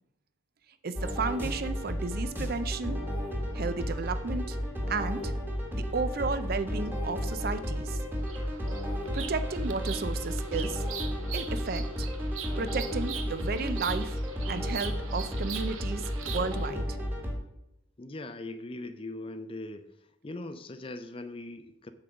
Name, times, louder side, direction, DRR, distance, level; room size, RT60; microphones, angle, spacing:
voice 1, 0.8-3.1 3.5-4.6 4.9-5.3 5.7-8.0 9.1-10.8 11.3-12.1 12.6-14.2 14.5-17.0, right 4 dB, 45° right, 11 dB, 0.5 m, -33 dB
sound 1, 1.0-17.3, equal, 10° right, 1.5 m, -33 dB
Bird vocalization bird call bird song, 8.2-16.7, right 8 dB, 80° right, 0.8 m, -42 dB
voice 2, 18.0-19.9 20.2-21.9, left 2 dB, 25° left, 10 dB, 0.4 m, -40 dB
8.6 x 3.8 x 6.8 m, 0.88 s
head